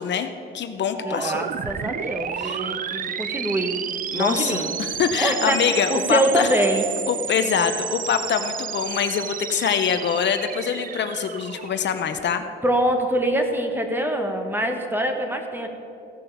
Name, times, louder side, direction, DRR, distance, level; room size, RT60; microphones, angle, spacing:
voice 1, 0.0-1.4 2.4-2.6 4.1-6.5 7.1-12.4, left 7 dB, 60° left, 8 dB, 0.7 m, -24 dB
sound 1, 0.9-12.6, right 8 dB, 45° right, 0.5 m, -32 dB
voice 2, 1.0-3.8 4.1-4.6 5.2-6.8 12.6-15.7, right 1 dB, 10° right, 4 dB, 1.3 m, -24 dB
15.5 x 5.4 x 7.0 m, 2.6 s
cardioid pair, 100°, 20 cm